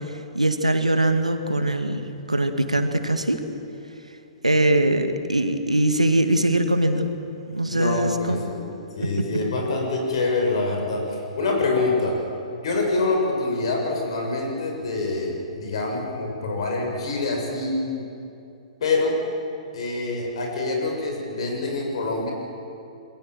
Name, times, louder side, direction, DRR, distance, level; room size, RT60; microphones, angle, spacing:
voice 1, 0.3-3.4 4.4-7.1 7.5-8.4, right 1 dB, 85° right, 7 dB, 2.1 m, -22 dB
voice 2, 7.7-8.7 8.9-12.2 12.6-18.0 18.8-19.2 19.7-22.3, left 3 dB, 60° left, 1 dB, 7.0 m, -25 dB
27.0 x 21.5 x 7.8 m, 2.7 s
figure-of-eight pair, 110°, 3 cm